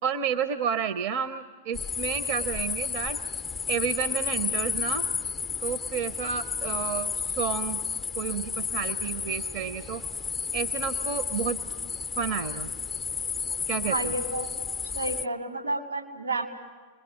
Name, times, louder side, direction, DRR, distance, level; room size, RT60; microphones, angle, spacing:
voice 1, 0.0-3.2 3.7-5.1 5.6-7.8 8.2-10.0 10.5-11.6 12.2-12.7 13.7-14.1, right 7 dB, 50° right, 11 dB, 1.1 m, -31 dB
sound 1, 1.7-15.3, left 6 dB, 10° left, 0.7 m, -32 dB
voice 2, 13.9-14.5 14.9-16.5, right 2 dB, 85° right, 3 dB, 3.7 m, -30 dB
29.5 x 21.5 x 8.6 m, 1.5 s
figure-of-eight pair, 90°, 0 cm